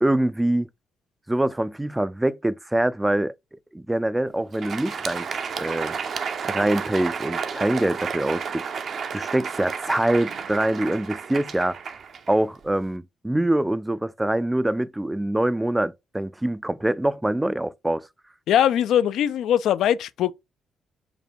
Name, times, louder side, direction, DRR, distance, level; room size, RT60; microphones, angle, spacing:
voice 1, 0.0-0.7 1.3-3.3 3.7-6.0 6.4-8.6 9.1-11.8 12.3-18.1, right 1 dB, 10° right, 0.4 m, -24 dB
Crowd, 4.4-12.9, right 6 dB, 55° right, 0.6 m, -32 dB
voice 2, 18.5-20.3, left 10 dB, 80° left, 0.4 m, -21 dB
5.1 x 2.2 x 4.4 m
cardioid pair, 90°, 0 cm